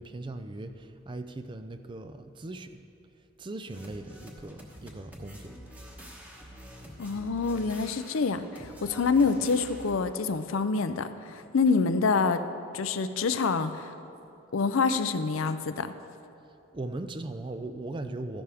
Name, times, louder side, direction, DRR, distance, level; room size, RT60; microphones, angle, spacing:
voice 1, 0.0-2.8 3.4-5.5 16.7-18.4, right 2 dB, 25° right, 9 dB, 0.4 m, -39 dB
sound 1, 3.7-9.9, equal, 10° right, 1.1 m, -47 dB
voice 2, 7.0-12.4 12.7-13.9 14.5-15.9, left 4 dB, 75° left, 11 dB, 0.5 m, -26 dB
13.5 x 11.0 x 3.5 m, 2.8 s
head